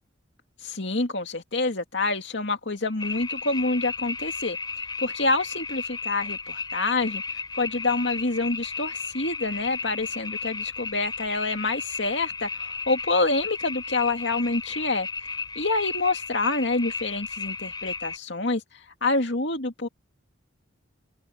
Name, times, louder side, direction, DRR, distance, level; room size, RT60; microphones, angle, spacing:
voice 1, 0.6-4.6 5.0-7.2 7.6-15.1 15.6-19.9, left 3 dB, 60° left, 2.5 m, -27 dB
sound 1, 3.0-18.2, left 5 dB, 20° left, 4.5 m, -34 dB
open air
head